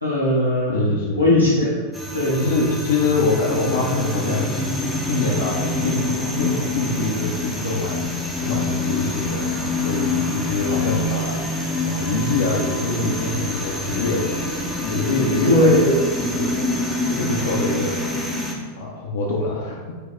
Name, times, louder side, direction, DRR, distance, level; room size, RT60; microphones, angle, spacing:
voice 1, 0.0-1.7 2.1-2.5 15.5-16.0, left 1 dB, 90° left, -8 dB, 0.9 m, -18 dB
voice 2, 0.7-1.2 2.3-4.6 5.1-8.1 8.4-9.5 9.8-11.4 11.9-14.2 14.8-15.7 16.3-16.6 17.1-18.1 18.8-19.9, left 3 dB, 60° left, -3 dB, 0.5 m, -24 dB
sound 1, 1.9-18.5, left 2 dB, 5° right, 0.6 m, -26 dB
4.6 x 2.1 x 3.4 m, 1.4 s
figure-of-eight pair, 90°, 0 cm